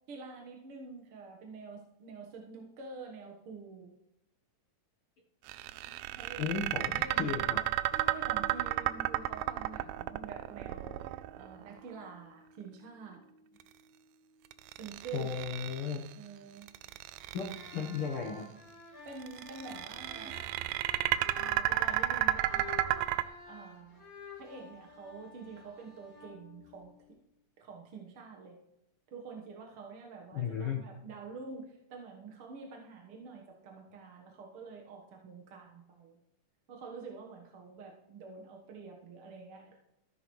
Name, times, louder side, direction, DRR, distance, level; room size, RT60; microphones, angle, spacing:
voice 1, 0.1-3.9 5.8-6.5 7.0-7.5 7.9-13.2 14.7-15.3 16.1-16.7 19.0-20.4 21.3-22.9 23.4-24.0 24.4-27.0 27.6-28.6 29.1-36.2 36.7-39.8, right 4 dB, 55° right, 0 dB, 1.7 m, -47 dB
sound 1, 5.5-11.7 14.5-16.1 16.6-18.0 19.2-23.2, right 15 dB, 90° right, 2.3 m, -32 dB
voice 2, 6.4-7.6 15.1-16.0 17.3-18.4 20.2-20.3 30.3-30.8, left 6 dB, 60° left, 0 dB, 1.5 m, -35 dB
sound 2, 7.9-18.3 18.7-18.8, right 3 dB, 25° right, 0.8 m, -57 dB
sound 3, 17.4-27.2, left 3 dB, 90° left, 5.5 m, -50 dB
14.0 x 12.5 x 3.2 m, 0.86 s
omnidirectional pair, 3.9 m